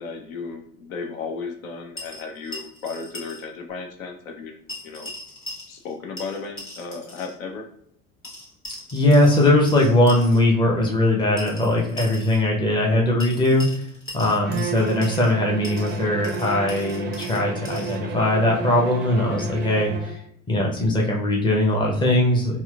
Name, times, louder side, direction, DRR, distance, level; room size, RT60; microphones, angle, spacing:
voice 1, 0.0-4.6 4.8-5.1 5.7-7.7, left 4 dB, 65° left, 2 dB, 0.7 m, -34 dB
sound 1, 2.0-3.4 3.7-3.8 4.7-5.9 6.2-7.3 8.2-10.4 11.4-12.4 13.2-15.3 15.6-18.0, left 1 dB, 30° left, 1.2 m, -39 dB
voice 2, 8.9-13.8 14.1-20.2 20.5-22.6, left 1 dB, 10° left, -1 dB, 0.7 m, -20 dB
Bowed string instrument, 14.4-20.2, right 6 dB, 25° right, 0.4 m, -33 dB
4.3 x 2.2 x 2.3 m, 0.68 s
figure-of-eight pair, 70°, 44 cm